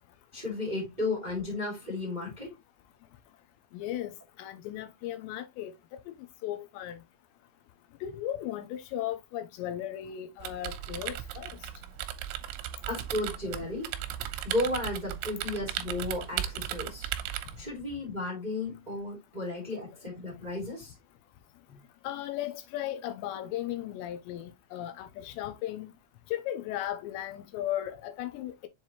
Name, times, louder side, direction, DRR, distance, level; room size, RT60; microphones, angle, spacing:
voice 1, 0.3-2.6 12.8-13.9 14.4-17.1 17.6-20.9 21.7-21.8, left 2 dB, 10° right, 2.1 m, -34 dB
voice 2, 3.7-6.1 6.4-7.0 8.0-11.6 22.0-25.9 26.3-28.5, left 12 dB, 85° left, 2.7 m, -36 dB
sound 1, 10.4-17.7, right 12 dB, 80° right, 2.8 m, -37 dB
7.3 x 4.5 x 2.9 m
omnidirectional pair, 5.6 m